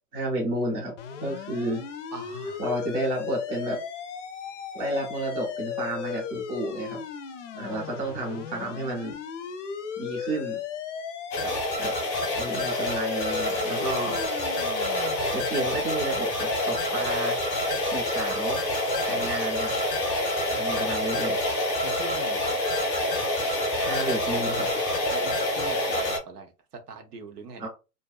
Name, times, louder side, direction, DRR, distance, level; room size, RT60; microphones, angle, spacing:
voice 1, 0.1-0.9 1.2-1.8 2.6-3.8 4.7-7.0 7.5-9.2 10.0-10.6 11.8-11.9 12.4-14.2 15.3-17.4 17.9-18.6 19.1-19.7 20.5-21.4 23.8-24.7 27.6-27.7, right 1 dB, 15° right, 0.6 m, -31 dB
sound 1, 1.0-15.4, left 7 dB, 55° left, 0.5 m, -36 dB
voice 2, 2.1-2.6 7.7-7.8 11.4-11.5 19.1-19.3 20.7-21.4 21.8-22.6 25.1-26.5 26.9-27.7, right 4 dB, 75° right, 0.9 m, -42 dB
sound 2, 11.3-26.2, left 1 dB, 20° left, 0.8 m, -27 dB
2.5 x 2.2 x 2.3 m
hypercardioid pair, 140°, 47 cm